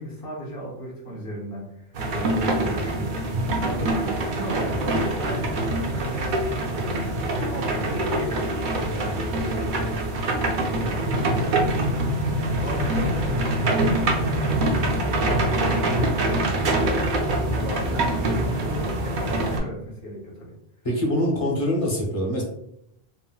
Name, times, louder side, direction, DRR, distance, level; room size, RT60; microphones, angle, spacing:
voice 1, 0.0-3.3 3.6-7.0 7.3-8.5 8.8-10.0 10.6-11.8 12.3-16.5 16.7-17.0 17.4-20.5, equal, 60° left, -3 dB, 1.1 m, -35 dB
sound 1, 1.9-19.6, right 1 dB, 60° right, 0.6 m, -24 dB
voice 2, 20.8-22.4, equal, 40° left, -3 dB, 0.7 m, -24 dB
3.7 x 2.0 x 2.2 m, 0.76 s
omnidirectional pair, 1.1 m